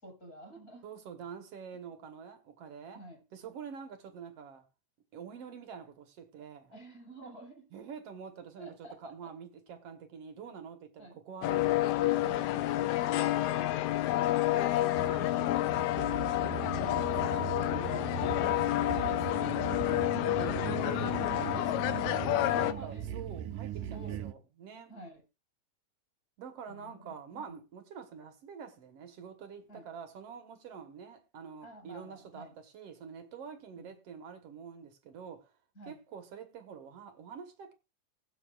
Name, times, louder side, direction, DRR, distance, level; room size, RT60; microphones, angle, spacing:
voice 1, 0.0-0.8 2.9-3.2 6.7-7.6 8.6-9.1 11.0-11.2 14.0-14.3 17.7-17.8 18.5-18.6 20.4-21.4 22.1-23.1 23.8-24.2 24.9-25.2 26.7-27.6 29.7-29.8 31.6-32.5 33.8-33.9 35.8-36.0, right 1 dB, 25° left, 5.7 m, -48 dB
voice 2, 0.8-3.0 3.3-4.6 5.1-6.8 7.7-13.8 14.5-19.9 20.4-24.9 26.4-35.5 35.8-37.7, right 7 dB, 55° right, 2.0 m, -47 dB
sound 1, 11.4-22.7, left 15 dB, 75° left, 1.8 m, -29 dB
sound 2, 14.9-24.3, right 11 dB, 80° right, 2.3 m, -40 dB
21.0 x 7.3 x 2.5 m
omnidirectional pair, 3.9 m